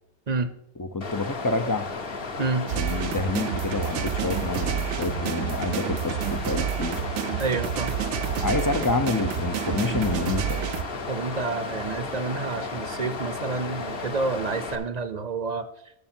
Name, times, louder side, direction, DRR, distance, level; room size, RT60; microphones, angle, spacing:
voice 1, 0.8-1.9 2.7-7.0 8.4-10.6, left 3 dB, 30° left, 9 dB, 0.3 m, -28 dB
Water, 1.0-14.8, left 3 dB, 55° left, 1.2 m, -34 dB
sound 1, 2.7-10.8, right 11 dB, 85° right, 0.9 m, -29 dB
voice 2, 7.4-7.9 11.1-15.7, right 4 dB, 40° right, 11 dB, 0.8 m, -29 dB
13.5 x 6.5 x 4.4 m, 0.77 s
omnidirectional pair, 1.2 m